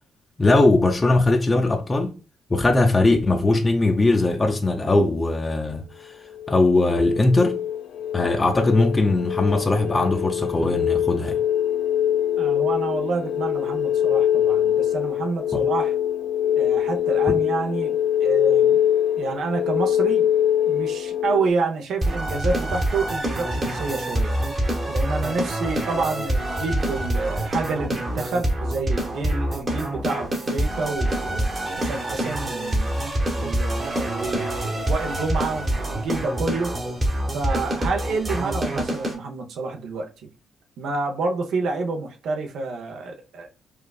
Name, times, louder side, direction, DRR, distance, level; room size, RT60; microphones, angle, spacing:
voice 1, 0.4-2.1 2.5-6.1 6.5-7.6 8.1-11.4 15.5-15.6, left 2 dB, 25° left, 0.5 m, -20 dB
sound 1, 6.3-21.5, left 10 dB, 80° left, 0.4 m, -23 dB
voice 2, 12.4-15.9 16.6-18.8 19.2-20.3 20.7-24.4 24.9-31.5 31.8-32.9 33.4-36.7 37.3-40.3 40.8-43.5, right 4 dB, 75° right, 0.8 m, -28 dB
sound 2, 22.0-39.1, right 1 dB, 35° right, 1.2 m, -26 dB
4.7 x 2.4 x 2.3 m
cardioid pair, 90°, 0 cm